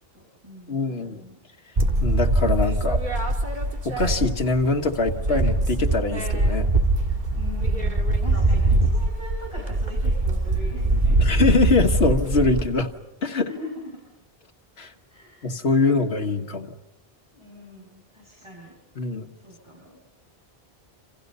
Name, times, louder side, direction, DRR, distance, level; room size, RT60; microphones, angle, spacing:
voice 1, 0.1-1.4 1.8-2.2 7.3-11.2 13.5-14.0 15.1-16.4 17.3-18.7 19.4-20.0, left 1 dB, 30° right, -4 dB, 7.2 m, -42 dB
voice 2, 0.7-1.2 2.0-3.0 3.8-6.7 11.2-12.9 13.2-13.5 14.8-14.9 15.4-16.7 19.0-19.3, left 3 dB, 80° left, 3 dB, 1.6 m, -23 dB
sound 1, 1.7-9.1, left 1 dB, 45° left, 3.8 m, -41 dB
sound 2, 1.8-4.6 4.9-12.6, right 2 dB, 50° right, 2.1 m, -22 dB
28.5 x 27.5 x 5.5 m, 0.91 s
omnidirectional pair, 1.0 m